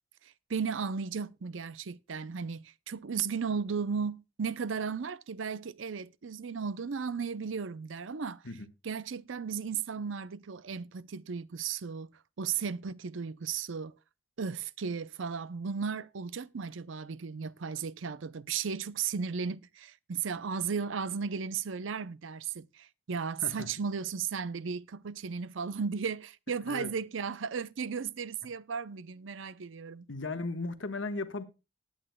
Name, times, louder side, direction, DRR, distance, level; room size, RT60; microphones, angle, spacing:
voice 1, 0.2-8.4 8.8-12.1 12.4-13.9 14.4-30.0, right 6 dB, 75° right, 0.6 m, -35 dB
voice 2, 30.1-31.4, left 3 dB, 70° left, 1.3 m, -36 dB
19.5 x 8.9 x 2.2 m
head